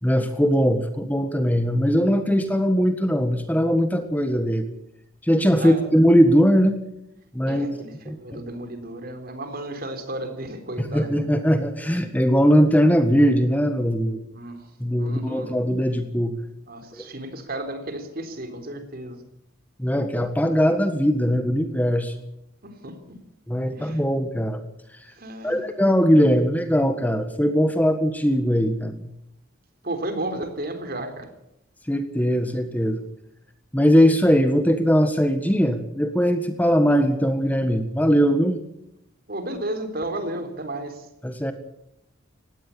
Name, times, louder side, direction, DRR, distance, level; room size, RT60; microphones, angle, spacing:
voice 1, 0.0-4.6 5.2-6.8 7.3-7.7 8.1-8.4 10.8-14.2 14.8-16.3 16.9-17.1 19.8-22.1 23.5-24.6 25.4-29.1 31.9-33.0 33.7-38.6 41.2-41.5, equal, 10° left, 8 dB, 1.6 m, -20 dB
voice 2, 5.6-5.9 7.5-11.1 14.3-14.7 15.0-15.6 16.7-19.2 22.6-23.2 23.7-24.0 25.1-25.6 29.8-31.3 39.3-41.1, right 1 dB, 50° right, 8 dB, 3.7 m, -33 dB
19.5 x 16.5 x 8.7 m, 0.81 s
head